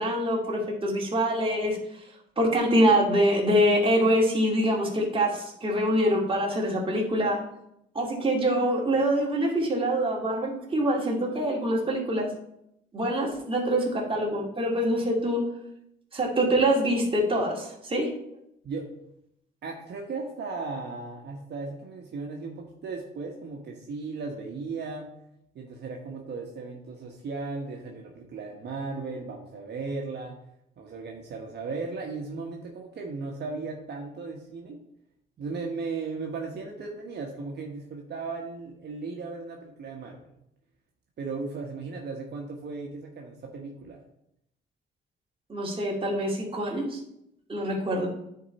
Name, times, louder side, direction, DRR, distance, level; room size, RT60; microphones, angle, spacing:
voice 1, 0.0-1.8 2.4-7.4 7.9-12.3 12.9-15.4 16.1-18.1 45.5-47.0 47.5-48.1, equal, 25° right, -2 dB, 2.5 m, -25 dB
voice 2, 19.6-25.1 25.5-30.3 30.8-34.8 35.4-40.3 41.2-44.0, right 4 dB, 60° right, 0 dB, 1.3 m, -36 dB
9.8 x 4.7 x 4.1 m, 0.78 s
cardioid pair, 90°, 20 cm